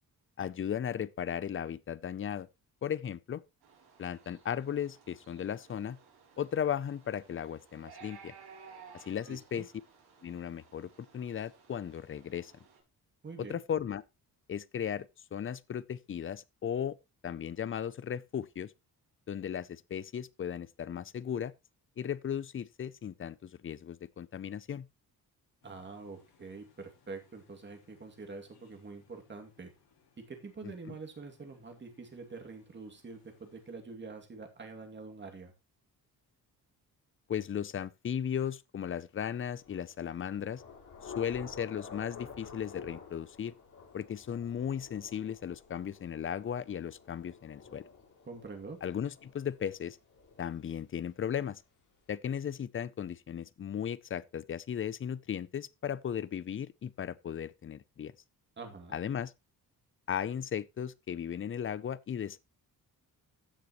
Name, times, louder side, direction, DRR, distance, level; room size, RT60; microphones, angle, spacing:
voice 1, 0.4-2.5 2.8-3.4 4.0-6.0 6.4-8.3 8.9-9.7 10.2-12.5 13.4-14.0 14.5-17.0 17.2-18.7 19.3-21.5 22.0-24.9 30.6-31.0 37.3-40.6 41.0-43.5 43.9-47.8 48.8-50.0 50.4-51.6 52.1-58.1 58.9-59.3 60.1-62.4, left 8 dB, 35° left, 0.5 m, -36 dB
sound 1, 3.6-12.8, right 6 dB, 90° right, 4.9 m, -57 dB
voice 2, 9.3-9.7 13.2-13.6 25.6-29.7 30.2-35.5 48.2-48.8 58.6-59.0, right 4 dB, 30° right, 2.5 m, -46 dB
sound 2, 25.6-33.7, left 7 dB, 80° left, 5.7 m, -69 dB
Thunder / Rain, 39.5-51.0, left 5 dB, 55° left, 4.5 m, -51 dB
15.5 x 6.7 x 3.0 m
wide cardioid pair, 145°, 37 cm